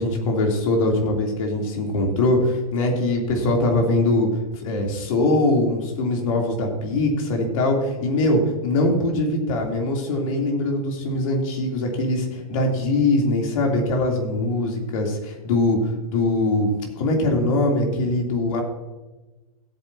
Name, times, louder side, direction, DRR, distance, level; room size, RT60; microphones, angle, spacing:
voice 1, 0.0-18.6, left 2 dB, 60° left, 1 dB, 3.3 m, -22 dB
16.5 x 8.4 x 2.9 m, 1.2 s
hypercardioid pair, 110°, 19 cm